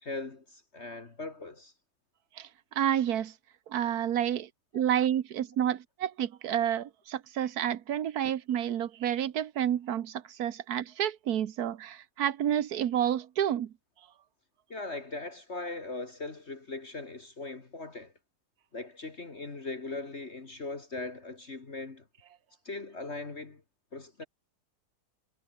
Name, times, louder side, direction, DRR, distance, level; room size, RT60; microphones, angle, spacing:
voice 1, 0.0-1.7 14.7-18.1 18.7-22.1 22.6-23.6 23.9-24.2, left 3 dB, 40° left, 2.3 m, -39 dB
voice 2, 2.7-3.3 3.7-13.7, right 10 dB, 65° right, 1.4 m, -30 dB
omnidirectional pair, 1.8 m